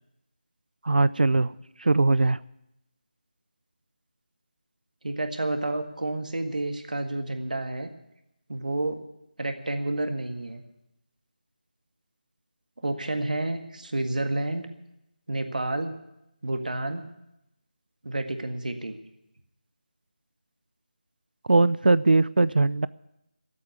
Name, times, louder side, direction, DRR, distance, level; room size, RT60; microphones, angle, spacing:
voice 1, 0.8-2.4 21.5-22.9, right 3 dB, 80° right, 18 dB, 0.5 m, -21 dB
voice 2, 5.0-7.9 8.5-9.0 9.4-10.6 12.8-14.7 15.3-15.9 16.4-17.1 18.0-19.0, right 2 dB, 65° right, 6 dB, 1.8 m, -30 dB
15.0 x 8.5 x 9.5 m, 0.85 s
figure-of-eight pair, 180°, 5 cm